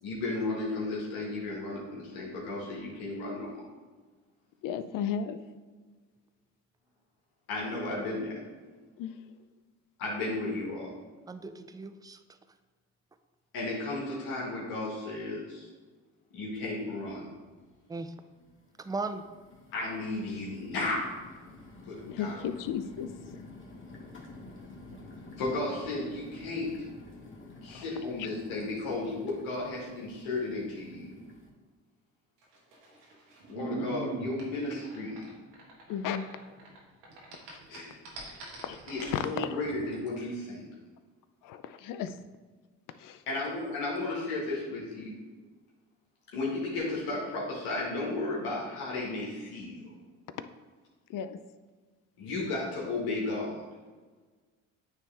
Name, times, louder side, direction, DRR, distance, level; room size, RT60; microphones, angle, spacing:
voice 1, 0.0-3.6 7.5-8.4 10.0-10.9 13.5-15.7 16.3-17.3 19.7-21.3 21.8-22.4 25.4-26.9 27.6-31.2 33.5-35.3 37.7-37.9 38.9-40.7 43.3-45.2 46.3-49.8 52.2-53.6, left 2 dB, 85° left, 1.6 m, -34 dB
voice 2, 4.6-5.4 9.0-9.2 22.0-23.4 27.7-27.8 35.9-36.3 37.5-37.6 38.6-38.8 39.1-39.6 41.4-42.2 43.0-43.2 51.1-51.4, left 8 dB, 65° left, 0.6 m, -34 dB
voice 3, 11.3-12.2 17.9-18.1 18.8-19.2, right 3 dB, 10° right, 0.5 m, -37 dB
sound 1, 16.5-16.6 17.0-17.7 18.3-31.5, left 2 dB, 35° left, 1.8 m, -50 dB
sound 2, 32.4-36.8 37.0-39.2, right 2 dB, 90° right, 1.5 m, -41 dB
9.1 x 3.5 x 3.4 m
supercardioid pair, 60°, 35 cm